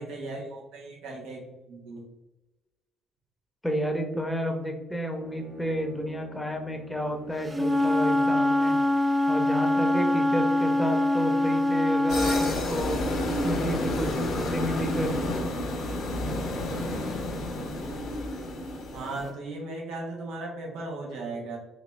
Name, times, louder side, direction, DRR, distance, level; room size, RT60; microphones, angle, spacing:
voice 1, 0.0-2.1 18.9-21.6, right 2 dB, 75° right, -2 dB, 1.2 m, -37 dB
voice 2, 3.6-8.7 9.3-13.0 13.4-15.1, equal, 5° left, 3 dB, 1.0 m, -31 dB
Bowed string instrument, 5.1-9.3, right 1 dB, 50° right, 1.4 m, -47 dB
Wind instrument woodwind instrument, 7.5-12.5, left 1 dB, 20° right, 0.4 m, -23 dB
sound 1, 12.1-19.3, left 1 dB, 65° left, 1.0 m, -30 dB
4.0 x 2.8 x 3.2 m, 1.0 s
hypercardioid pair, 50°, 0 cm